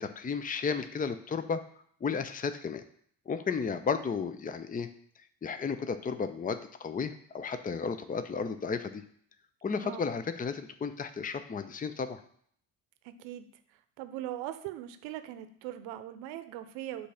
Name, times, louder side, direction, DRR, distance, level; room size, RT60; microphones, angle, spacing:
voice 1, 0.0-1.6 2.0-2.8 3.3-4.9 5.4-9.0 9.6-12.2, left 5 dB, 20° left, 10 dB, 0.6 m, -33 dB
voice 2, 13.0-17.1, right 12 dB, 70° right, 11 dB, 0.8 m, -41 dB
8.2 x 2.8 x 5.8 m, 0.63 s
hypercardioid pair, 55°, 47 cm